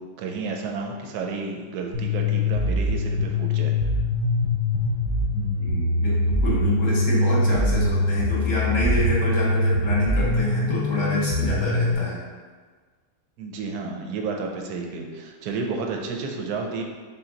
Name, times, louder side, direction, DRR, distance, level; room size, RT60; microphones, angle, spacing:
voice 1, 0.2-3.7 13.4-16.8, right 4 dB, 70° right, 2 dB, 1.1 m, -31 dB
sound 1, 1.9-11.9, left 1 dB, 45° right, 0.8 m, -23 dB
voice 2, 5.3-12.2, left 1 dB, 50° left, -6 dB, 1.4 m, -27 dB
5.7 x 2.2 x 3.8 m, 1.5 s
omnidirectional pair, 1.9 m